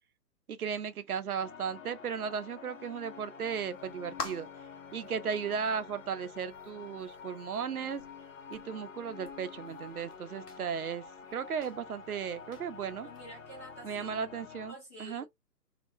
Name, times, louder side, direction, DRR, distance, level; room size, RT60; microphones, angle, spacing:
voice 1, 0.5-4.5 4.9-8.0 8.5-11.1 11.3-13.1 13.8-15.2, right 7 dB, 60° right, 0.7 m, -36 dB
sound 1, 1.4-14.7, left 6 dB, 50° left, 0.6 m, -49 dB
sound 2, 3.7-13.8, left 4 dB, 70° left, 1.4 m, -50 dB
voice 2, 13.0-14.3 14.7-15.2, right 1 dB, 10° left, 0.5 m, -48 dB
2.9 x 2.0 x 2.5 m
figure-of-eight pair, 135°, 50 cm